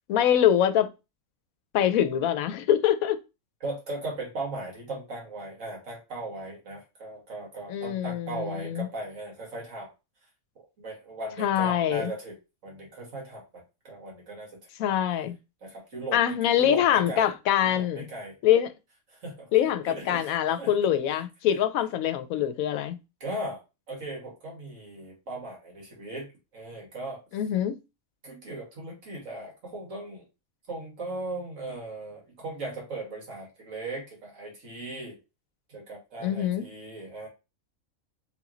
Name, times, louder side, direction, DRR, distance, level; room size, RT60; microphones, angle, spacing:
voice 1, 0.1-0.9 1.7-3.2 7.7-8.9 11.4-12.1 14.8-15.4 16.1-18.1 18.4-18.7 19.5-23.0 27.3-27.7 36.2-36.7, left 10 dB, 85° left, 1.0 m, -24 dB
voice 2, 3.6-9.9 10.8-12.4 12.6-14.5 15.6-17.3 17.6-18.3 19.1-20.7 23.2-23.6 23.9-26.3 26.5-27.2 28.2-30.2 30.7-35.2 35.7-37.3, right 2 dB, 65° right, 1.9 m, -38 dB
3.5 x 3.0 x 3.8 m
omnidirectional pair, 1.4 m